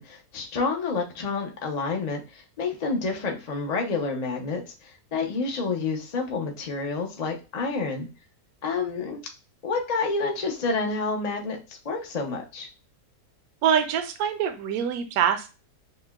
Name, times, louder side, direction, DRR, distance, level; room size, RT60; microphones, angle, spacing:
voice 1, 0.0-8.1 8.6-9.2 9.6-12.7, left 4 dB, 50° left, 1 dB, 0.5 m, -29 dB
voice 2, 13.6-15.5, right 8 dB, 75° right, 8 dB, 1.0 m, -24 dB
6.3 x 2.1 x 2.3 m, 0.31 s
omnidirectional pair, 1.7 m